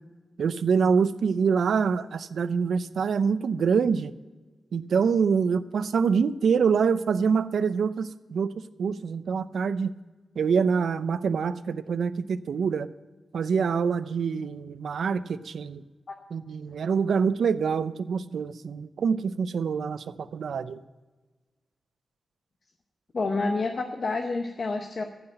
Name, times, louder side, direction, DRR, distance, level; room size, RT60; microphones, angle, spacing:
voice 1, 0.4-4.1 4.7-8.5 8.8-9.9 10.4-12.9 13.3-15.8 16.3-20.8, right 6 dB, 75° right, 14 dB, 0.5 m, -25 dB
voice 2, 23.1-25.0, left 3 dB, 40° left, 4 dB, 0.8 m, -28 dB
14.5 x 5.8 x 8.9 m, 1.2 s
wide cardioid pair, 170°, 0 cm